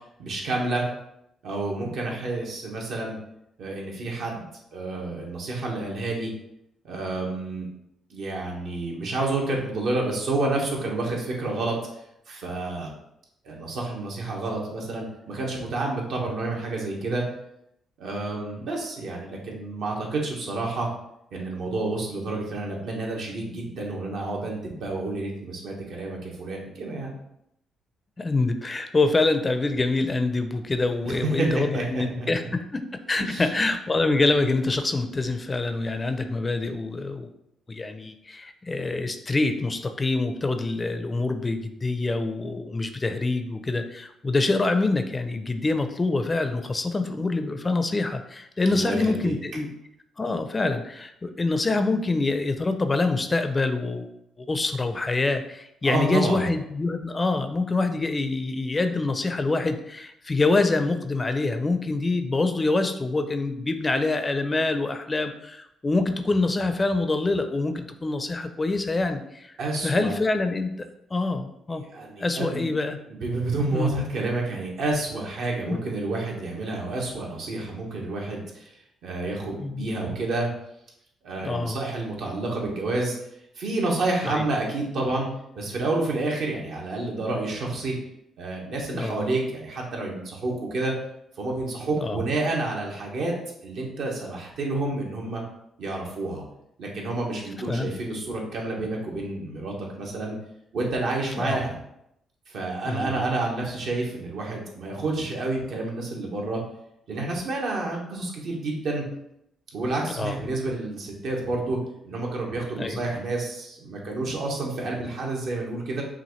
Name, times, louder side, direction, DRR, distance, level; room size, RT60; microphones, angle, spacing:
voice 1, 0.2-0.8 1.4-3.2 3.6-6.3 6.8-7.7 8.1-11.8 12.3-12.9 13.4-17.2 18.0-20.9 21.3-27.1 31.0-32.5 33.2-33.5 48.7-49.3 55.8-56.5 69.6-70.1 71.9-72.7 73.1-78.7 79.0-80.5 81.2-83.1 83.6-85.3 85.5-87.9 88.4-90.9 91.4-93.3 93.6-95.4 95.8-96.4 96.8-100.4 100.7-101.8 102.5-106.6 107.1-109.0 109.7-111.8 112.0-116.0, right 2 dB, 70° right, -1 dB, 1.2 m, -29 dB
voice 2, 28.2-37.3 37.7-49.7 50.2-54.1 54.4-69.5 69.8-71.8 72.2-73.0 73.7-74.0 75.7-75.8 79.6-79.9 81.4-81.8 84.2-84.4 88.9-89.2 92.0-92.2 97.7-97.9 101.4-101.6 102.9-103.3 110.2-110.4 112.8-113.0, left 3 dB, 25° left, 8 dB, 0.4 m, -25 dB
5.7 x 2.5 x 3.1 m, 0.78 s
cardioid pair, 90°, 0 cm